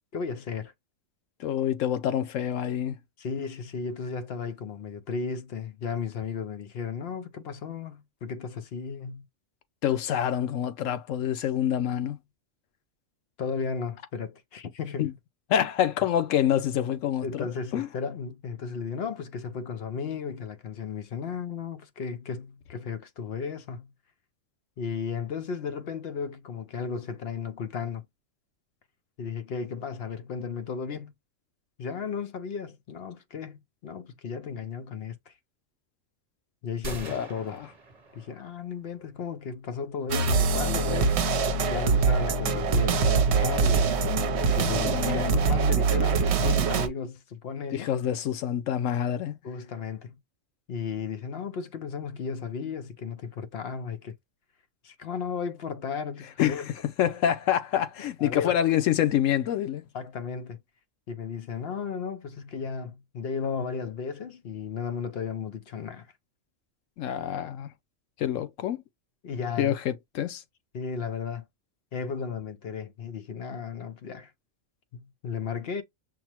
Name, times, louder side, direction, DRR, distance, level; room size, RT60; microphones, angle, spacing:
voice 1, 0.1-0.7 3.2-9.3 13.4-15.1 17.2-23.9 24.8-28.0 29.2-31.1 31.8-35.3 36.6-37.6 38.1-41.2 41.7-44.1 44.5-47.9 49.4-50.2 50.7-54.1 54.8-56.7 58.2-58.6 59.9-60.6 61.1-66.1 69.2-69.8 70.7-71.5 71.9-74.3 74.9-75.8, left 6 dB, 60° left, 0.8 m, -34 dB
voice 2, 1.4-3.0 9.8-12.2 15.0-15.1 15.5-17.9 37.0-37.7 44.8-45.6 47.7-49.4 56.4-59.8 67.0-67.7 68.2-68.8 69.6-70.4, left 10 dB, 90° left, 1.0 m, -27 dB
sound 1, 36.8-38.7, right 2 dB, 35° right, 1.0 m, -41 dB
sound 2, 40.1-46.9, right 4 dB, 65° right, 0.9 m, -24 dB
5.9 x 2.1 x 2.9 m
omnidirectional pair, 1.3 m